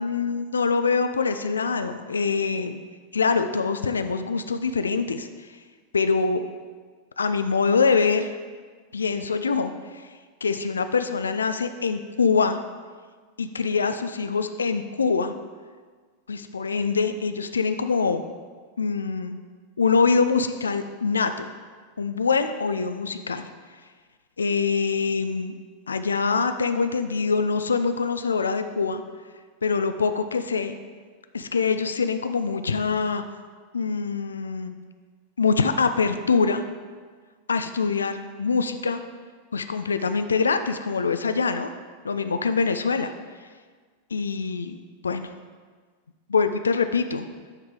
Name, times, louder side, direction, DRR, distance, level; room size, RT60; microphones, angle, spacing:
voice 1, 0.0-2.8 3.1-5.5 5.9-6.4 7.2-8.3 8.9-10.1 10.4-12.6 13.4-15.3 16.3-18.2 18.8-19.4 19.8-21.5 22.0-23.5 24.4-25.5 25.9-29.0 29.6-30.7 31.3-33.2 33.7-34.7 35.4-36.6 37.5-39.0 39.5-41.7 42.0-43.1 44.1-44.8 45.0-45.3 46.3-47.3, left 5 dB, 75° left, 9 dB, 0.3 m, -24 dB
9.5 x 3.6 x 4.8 m, 1.5 s
figure-of-eight pair, 90°, 0 cm